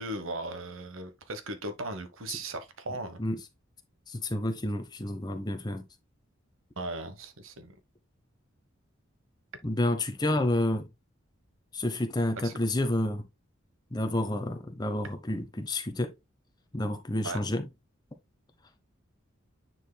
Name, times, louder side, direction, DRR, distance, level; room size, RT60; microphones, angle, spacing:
voice 1, 0.0-3.2 6.8-7.7 12.4-12.5 17.2-17.4, right 2 dB, 80° right, 1.1 m, -37 dB
voice 2, 4.1-5.8 9.6-10.9 11.7-13.3 13.9-16.1 16.7-17.7, left 1 dB, 20° left, 0.7 m, -29 dB
9.8 x 4.6 x 2.2 m
head